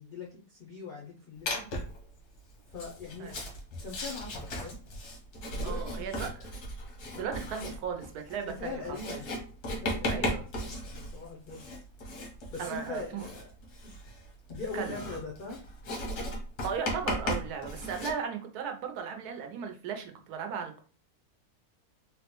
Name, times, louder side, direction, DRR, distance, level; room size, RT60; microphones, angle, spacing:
voice 1, 0.0-1.7 2.7-3.3 3.8-4.8 5.5-6.2 7.1-7.2 8.4-9.3 9.8-10.4 10.8-11.7 12.5-13.5 14.5-15.6, left 3 dB, 70° left, -2 dB, 0.4 m, -41 dB
Writing, 1.5-2.0 2.7-18.1, left 1 dB, 85° left, 1.4 m, -36 dB
voice 2, 5.6-6.6 6.8-8.8 9.1-9.2 10.1-10.4 12.6-13.3 14.7-15.0 16.6-20.8, right 7 dB, 90° right, 5 dB, 1.2 m, -36 dB
3.6 x 2.1 x 2.9 m, 0.40 s
omnidirectional pair, 1.6 m